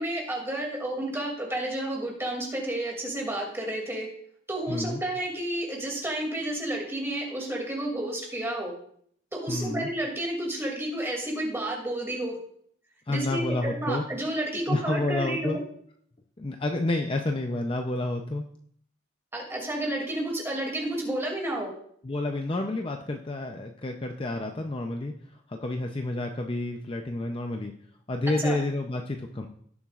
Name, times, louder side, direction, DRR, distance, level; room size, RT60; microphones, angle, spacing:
voice 1, 0.0-4.1 4.5-8.7 9.3-12.4 13.1-15.6 19.3-21.7 28.4-28.6, right 1 dB, 10° right, -1 dB, 2.5 m, -31 dB
voice 2, 4.7-5.0 9.5-9.9 13.1-14.0 14.7-15.6 16.4-18.5 22.0-25.1 25.5-27.7 28.1-29.5, left 2 dB, 25° left, 3 dB, 0.5 m, -29 dB
17.5 x 7.2 x 2.4 m, 0.65 s
head